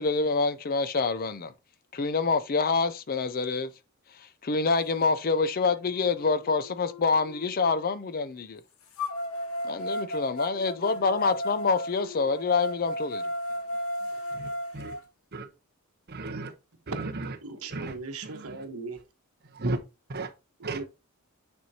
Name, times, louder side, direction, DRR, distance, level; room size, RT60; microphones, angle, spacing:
voice 1, 0.0-1.5 1.9-3.7 4.2-8.6 9.6-13.2, left 4 dB, 40° left, 0.5 m, -26 dB
sound 1, 5.1-5.2 5.8-7.7 9.0-15.0, equal, 70° left, 1.0 m, -35 dB
voice 2, 14.3-14.9 15.3-15.5 16.1-16.5 16.9-17.1 17.7-17.9 18.2-18.3 19.5-19.8 20.1-20.3 20.6-20.8, right 2 dB, 45° right, 0.9 m, -33 dB
voice 3, 17.4-19.0 20.7-20.8, right 3 dB, 75° right, 1.3 m, -38 dB
9.3 x 4.5 x 2.8 m
head